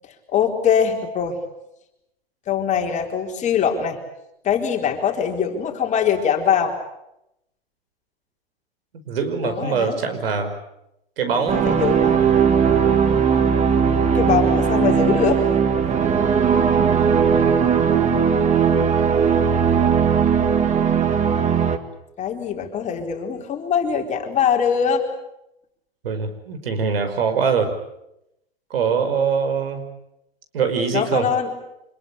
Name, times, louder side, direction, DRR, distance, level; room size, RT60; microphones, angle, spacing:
voice 1, 0.3-1.4 2.5-4.0 4.4-6.7 9.4-10.0 11.3-12.2 13.9-15.4 22.2-25.0 30.9-31.5, left 7 dB, 25° left, 2 dB, 4.3 m, -22 dB
voice 2, 9.1-10.6 11.2-11.7 17.3-17.7 26.0-27.8 28.7-29.9 30.5-31.3, right 5 dB, 75° right, 8 dB, 5.3 m, -23 dB
sound 1, 11.5-21.8, right 7 dB, 25° right, 2.0 m, -18 dB
26.0 x 21.0 x 8.7 m, 0.83 s
hypercardioid pair, 120°, 30 cm